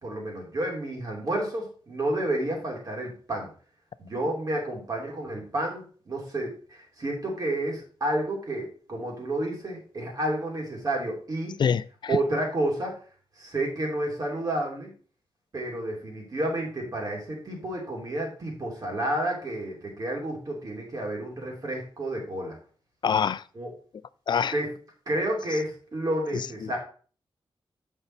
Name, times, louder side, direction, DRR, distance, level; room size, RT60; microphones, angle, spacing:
voice 1, 0.0-3.5 4.0-11.5 12.1-12.9 13.4-14.9 15.5-22.6 23.5-23.7 24.5-24.7 25.1-26.8, right 1 dB, 40° right, 2.8 m, -30 dB
voice 2, 11.6-12.2 23.0-23.4 24.3-24.5 26.3-26.8, left 7 dB, 50° left, 0.3 m, -26 dB
8.1 x 5.5 x 4.4 m
wide cardioid pair, 145°, 10 cm